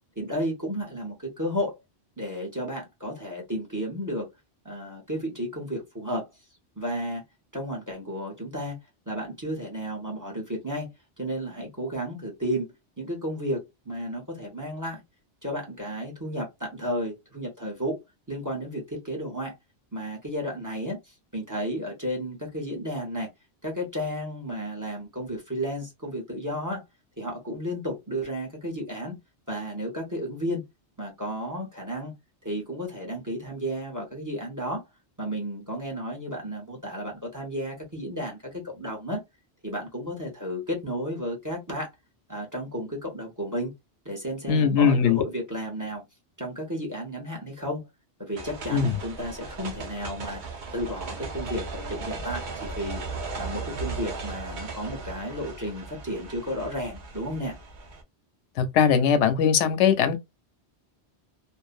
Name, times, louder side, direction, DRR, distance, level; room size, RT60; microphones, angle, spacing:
voice 1, 0.2-1.8 2.2-4.3 4.6-6.3 6.8-7.2 7.5-8.8 9.1-15.0 15.4-18.0 18.3-19.5 19.9-23.3 23.6-26.8 27.2-29.2 29.5-30.6 31.0-32.1 32.4-34.8 35.2-39.2 39.6-41.9 42.3-43.7 44.0-46.0 46.4-47.8 48.2-50.4 50.7-53.0 53.4-57.6, equal, 20° right, 0.7 m, -33 dB
voice 2, 44.5-45.2 48.7-48.9 58.6-60.2, left 7 dB, 85° left, 0.9 m, -20 dB
sound 1, 48.4-58.0, right 4 dB, 50° right, 0.7 m, -37 dB
2.6 x 2.1 x 2.4 m
omnidirectional pair, 1.2 m